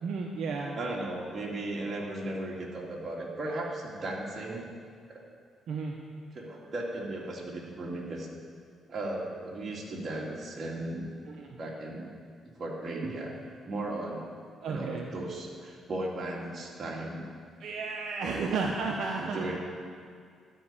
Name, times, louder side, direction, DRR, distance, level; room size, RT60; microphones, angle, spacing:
voice 1, 0.0-0.8 5.7-6.0 11.3-11.6 14.6-15.1 17.6-19.5, right 4 dB, 70° right, 0 dB, 1.0 m, -33 dB
voice 2, 0.8-4.7 5.1-5.2 6.3-8.3 8.9-11.1 11.6-12.1 12.6-13.3 13.6-14.3 14.7-17.2 18.2-18.5 19.2-19.6, right 2 dB, 45° right, -3 dB, 2.5 m, -36 dB
12.0 x 5.4 x 8.7 m, 2.2 s
cardioid pair, 90°, 0 cm